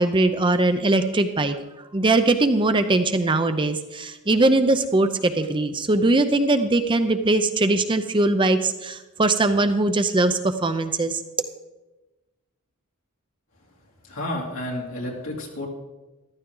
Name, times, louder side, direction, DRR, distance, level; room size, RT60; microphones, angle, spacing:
voice 1, 0.0-1.6 1.9-11.2, right 2 dB, 20° right, 9 dB, 0.6 m, -21 dB
voice 2, 14.1-15.7, left 1 dB, 65° left, -2 dB, 3.2 m, -31 dB
14.0 x 12.5 x 3.8 m, 1.1 s
head